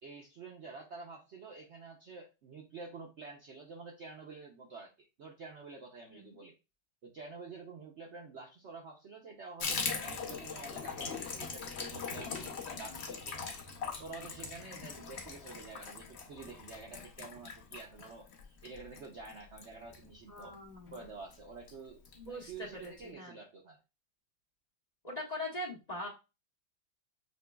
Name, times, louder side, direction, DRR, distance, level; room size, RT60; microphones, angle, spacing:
voice 1, 0.0-6.5 7.0-13.6 14.0-20.5 20.9-22.0 22.3-23.8, right 4 dB, 80° right, 0 dB, 0.6 m, -49 dB
Water tap faucet / Bathtub (filling or washing), 9.6-20.5 20.9-21.0 21.3-21.4 21.7-22.2 22.4-22.5 22.8-22.9, left 5 dB, 70° left, 0.6 m, -41 dB
voice 2, 20.3-21.0 22.2-23.3 25.0-26.1, left 1 dB, 25° left, -2 dB, 1.1 m, -42 dB
6.4 x 2.9 x 2.3 m, 0.27 s
omnidirectional pair, 2.1 m